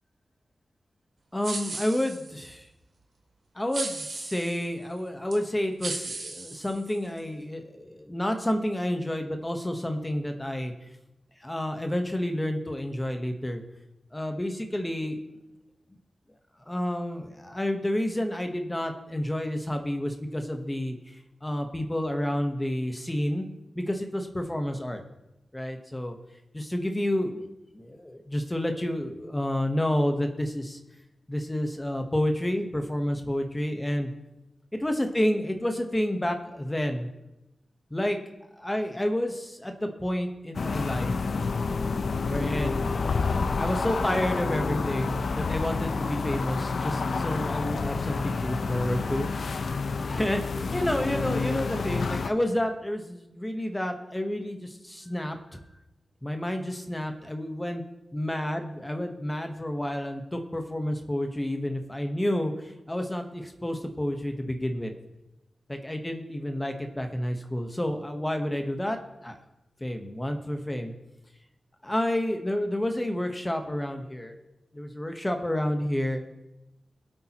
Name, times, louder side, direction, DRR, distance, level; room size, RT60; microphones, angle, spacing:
voice 1, 1.3-2.7 3.5-10.7 11.4-13.6 14.1-15.2 16.7-21.0 21.4-23.5 23.7-25.0 25.5-26.2 26.5-27.5 27.7-30.8 31.3-34.1 34.7-37.1 37.9-38.2 38.6-41.1 42.3-42.9 43.6-49.3 50.1-50.4 50.7-55.6 56.2-57.8 58.1-64.9 65.7-69.0 69.2-69.4 69.8-70.9 71.8-74.4 74.7-76.3, left 1 dB, 10° left, 5 dB, 1.1 m, -30 dB
sound 1, 1.4-2.5 3.7-4.7 5.3-5.4 5.8-7.2, right 3 dB, 70° right, 2.6 m, -36 dB
sound 2, 40.5-52.3, left 4 dB, 55° left, 0.6 m, -29 dB
22.0 x 8.5 x 3.0 m, 0.94 s
wide cardioid pair, 180°, 0 cm